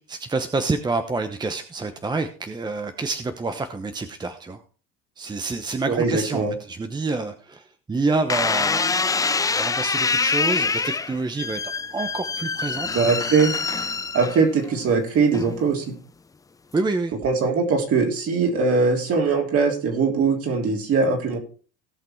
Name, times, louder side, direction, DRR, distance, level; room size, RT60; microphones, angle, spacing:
voice 1, 0.1-4.6 5.2-11.6 11.9-12.9 16.7-17.1, right 3 dB, 15° right, 8 dB, 0.9 m, -28 dB
voice 2, 5.9-6.5 12.9-13.5 14.1-15.9 17.2-21.4, right 4 dB, 50° right, 3 dB, 3.3 m, -21 dB
sound 1, 8.3-14.7 15.3-15.8, left 4 dB, 10° left, 0.4 m, -25 dB
17.5 x 5.9 x 4.5 m, 0.38 s
cardioid pair, 125°, 30 cm